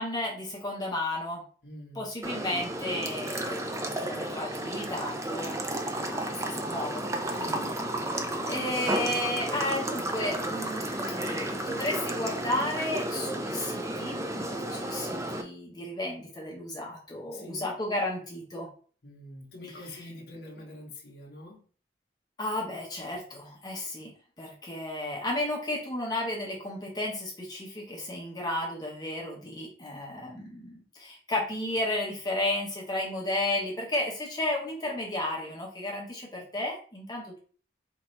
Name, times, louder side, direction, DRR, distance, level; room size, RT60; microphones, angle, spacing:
voice 1, 0.0-1.4 2.0-5.5 6.1-7.0 8.4-18.7 22.4-24.1 24.4-37.4, left 1 dB, 20° left, -2 dB, 0.8 m, -33 dB
voice 2, 1.6-2.1 7.3-7.8 17.3-17.7 19.0-21.6, left 1 dB, 60° left, -3 dB, 0.9 m, -44 dB
sound 1, 2.2-15.4, right 1 dB, 15° right, 0.4 m, -32 dB
4.5 x 2.7 x 3.1 m, 0.43 s
head